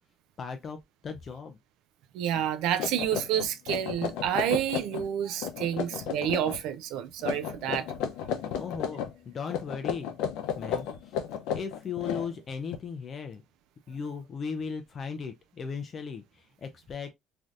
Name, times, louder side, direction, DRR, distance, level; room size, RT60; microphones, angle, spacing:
voice 1, 0.4-0.8 1.0-1.6 8.5-10.1 10.6-11.2 11.5-13.4 13.9-17.1, left 6 dB, 30° left, 0.3 m, -37 dB
voice 2, 2.1-7.9, right 10 dB, 75° right, 0.3 m, -29 dB
sound 1, 2.4-2.5 2.8-5.1 5.4-6.6 7.2-9.1 9.5-12.8, left 8 dB, 90° left, 0.5 m, -33 dB
3.2 x 2.6 x 2.4 m
cardioid pair, 160°, 0 cm